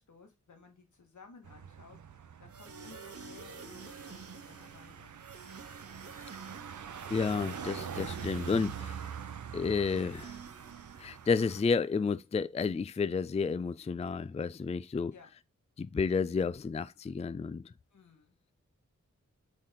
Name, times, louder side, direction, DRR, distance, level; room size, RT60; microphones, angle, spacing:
voice 1, 0.0-2.0 2.4-5.1 5.9-6.7 15.1-15.3 17.9-18.4, left 5 dB, 80° left, 1.9 m, -57 dB
sound 1, 1.4-11.6, right 7 dB, 80° right, 0.7 m, -44 dB
sound 2, 2.5-11.6, right 5 dB, 50° right, 1.0 m, -49 dB
voice 2, 7.1-9.1 9.5-10.4 11.0-15.1 15.8-17.7, left 5 dB, 20° left, 0.3 m, -31 dB
6.4 x 4.2 x 3.7 m
cardioid pair, 55°, 29 cm